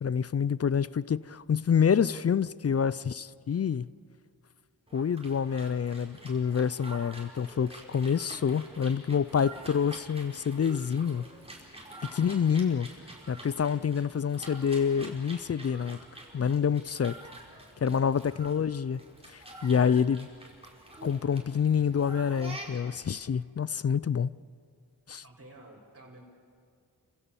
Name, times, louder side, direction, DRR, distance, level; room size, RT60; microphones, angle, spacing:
voice 1, 0.0-3.9 4.9-11.3 12.1-12.9 13.3-16.0 16.3-17.1 17.8-19.0 19.3-20.3 21.0-24.3 25.1-25.2, left 7 dB, 40° left, 0.5 m, -27 dB
sound 1, 4.9-23.0, right 1 dB, 15° right, 4.9 m, -47 dB
voice 2, 25.2-26.2, right 1 dB, 35° right, 4.4 m, -52 dB
29.0 x 15.5 x 7.1 m
cardioid pair, 50°, 40 cm